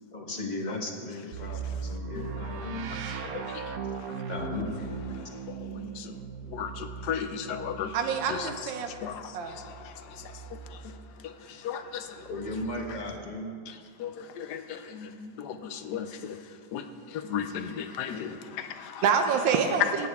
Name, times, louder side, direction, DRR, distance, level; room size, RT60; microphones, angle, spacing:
voice 1, 0.1-2.9 3.2-3.6 4.3-5.2 12.3-13.6, left 2 dB, 30° left, 1 dB, 1.0 m, -36 dB
sound 1, 1.3-11.1 12.1-13.2, right 6 dB, 65° right, 0.9 m, -39 dB
voice 2, 3.2-3.6 3.9-4.2 5.5-6.2 6.5-8.0 8.3-8.5 9.0-12.3 13.7-13.8 14.0-19.0 19.8-20.1, left 8 dB, 70° left, 9 dB, 1.1 m, -36 dB
voice 3, 7.9-8.9 9.3-9.6 19.0-20.1, right 6 dB, 80° right, 5 dB, 1.4 m, -26 dB
17.5 x 8.5 x 3.5 m, 2.1 s
omnidirectional pair, 2.1 m